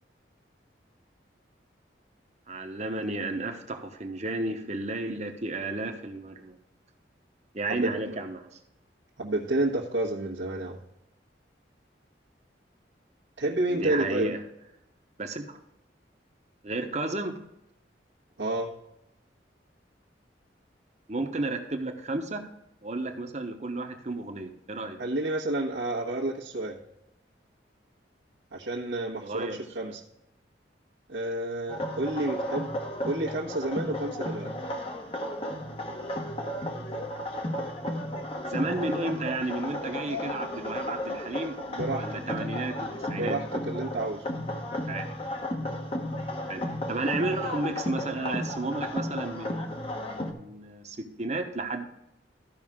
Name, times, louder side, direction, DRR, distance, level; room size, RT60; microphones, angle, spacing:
voice 1, 2.5-6.6 7.5-8.5 13.7-14.4 15.2-15.6 16.6-17.4 21.1-22.4 22.8-25.0 29.2-29.9 38.5-41.6 41.9-43.4 44.9-45.2 46.5-46.6 46.9-49.8 50.1-51.8, right 2 dB, 40° right, 5 dB, 1.1 m, -32 dB
voice 2, 7.7-8.1 9.2-10.8 13.4-14.3 18.4-18.7 25.0-26.8 28.5-30.0 31.1-32.7 33.0-34.5 41.1-41.2 41.7-42.2 43.1-44.2, right 2 dB, 80° right, -6 dB, 1.4 m, -30 dB
sound 1, 31.7-50.3, left 1 dB, 30° left, 1.0 m, -34 dB
14.0 x 5.7 x 3.7 m, 0.86 s
head